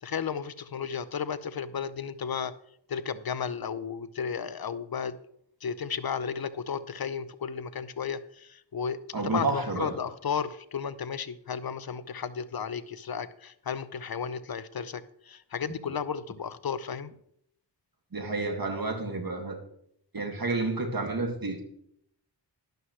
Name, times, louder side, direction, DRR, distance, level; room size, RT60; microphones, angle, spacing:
voice 1, 0.0-2.5 2.9-5.2 5.6-17.1, left 6 dB, 55° left, 15 dB, 0.7 m, -34 dB
voice 2, 9.1-9.9 18.1-19.6 20.1-21.6, right 3 dB, 50° right, 3 dB, 2.3 m, -30 dB
12.0 x 11.5 x 3.2 m, 0.70 s
wide cardioid pair, 60°, 43 cm